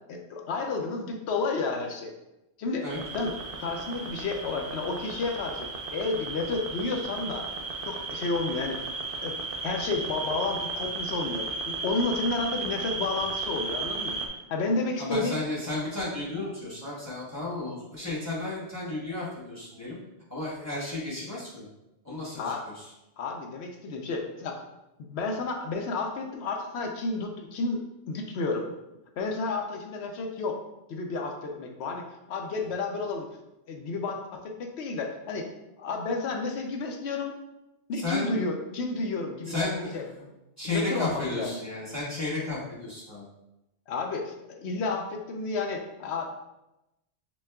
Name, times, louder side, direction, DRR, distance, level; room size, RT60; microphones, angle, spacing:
voice 1, 0.1-2.1 2.6-2.9 3.1-3.3 3.6-7.5 7.8-8.9 9.2-9.3 9.6-14.2 14.5-15.4 22.4-22.6 23.2-24.6 25.0-28.7 29.2-30.6 30.9-33.3 33.7-35.5 35.8-37.3 37.9-39.7 39.9-40.3 40.6-41.6 43.9-46.4, left 3 dB, 70° left, 3 dB, 0.9 m, -31 dB
sound 1, 2.9-14.3, right 3 dB, 60° right, 0.7 m, -35 dB
voice 2, 15.0-20.0 20.3-21.7 22.0-22.9 37.9-38.4 39.5-40.2 40.6-43.3, left 2 dB, 15° left, -7 dB, 1.1 m, -33 dB
6.0 x 2.3 x 2.2 m, 0.93 s
omnidirectional pair, 1.2 m